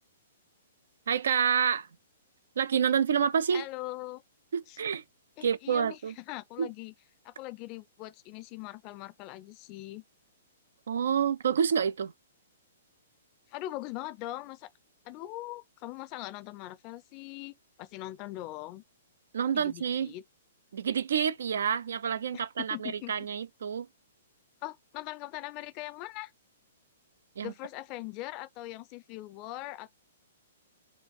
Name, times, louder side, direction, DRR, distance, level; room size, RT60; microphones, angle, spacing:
voice 1, 1.1-1.9 2.6-3.6 4.5-5.0 5.4-6.1 6.6-6.7 10.9-12.1 19.3-20.1 20.7-23.9 27.4-27.5, right 7 dB, 65° right, 0.4 m, -28 dB
voice 2, 3.5-4.2 4.7-4.8 5.4-6.9 7.2-10.0 13.5-14.7 15.0-17.5 17.8-18.8 19.5-20.2 22.3-23.1 24.6-26.3 27.4-29.9, left 17 dB, 35° left, 0.5 m, -41 dB
3.2 x 2.4 x 4.3 m
figure-of-eight pair, 115°, 0 cm